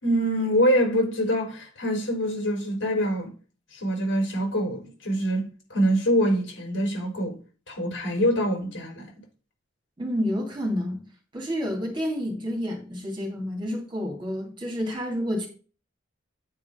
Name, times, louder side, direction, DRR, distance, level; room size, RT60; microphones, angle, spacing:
voice 1, 0.0-3.3 3.7-7.4 7.7-9.1, equal, 75° left, 4.3 m, -25 dB
voice 2, 10.0-11.0 11.3-15.5, equal, 25° right, 2.8 m, -29 dB
9.2 x 4.9 x 5.2 m
head